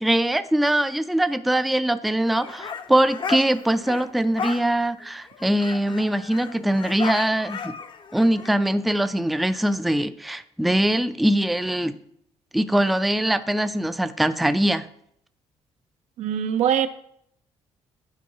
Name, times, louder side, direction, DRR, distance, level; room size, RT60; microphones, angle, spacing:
voice 1, 0.0-7.7 8.1-12.0 12.5-14.9, right 1 dB, ahead, 11 dB, 0.3 m, -22 dB
sound 1, 2.3-4.1 4.4-4.6 5.0-5.1 5.3-8.5, left 6 dB, 45° left, 0.6 m, -34 dB
voice 2, 16.2-16.9, right 9 dB, 80° right, 10 dB, 0.5 m, -22 dB
11.0 x 4.6 x 2.8 m, 0.70 s
cardioid pair, 110°, 12 cm